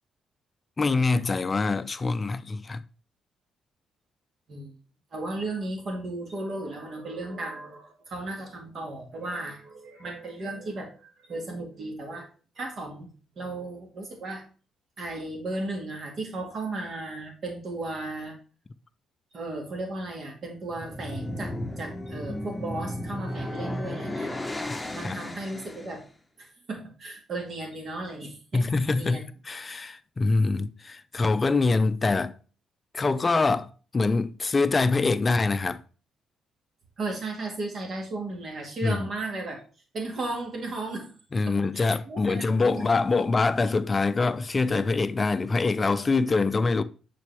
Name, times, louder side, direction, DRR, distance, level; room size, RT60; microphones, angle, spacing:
voice 1, 0.8-2.8 25.0-25.2 28.5-32.3 32.9-35.8 38.8-39.0 41.3-46.8, left 3 dB, 30° left, 0.4 m, -24 dB
voice 2, 5.1-12.3 12.6-13.1 13.4-14.4 15.0-18.4 19.3-24.3 24.9-26.1 26.4-28.7 28.9-29.2 37.0-39.6 39.9-41.1 41.5-42.9, right 2 dB, 55° right, 2.0 m, -35 dB
sound 1, 20.6-26.0, left 1 dB, 10° left, 0.9 m, -34 dB
6.6 x 4.2 x 3.4 m
cardioid pair, 90°, 0 cm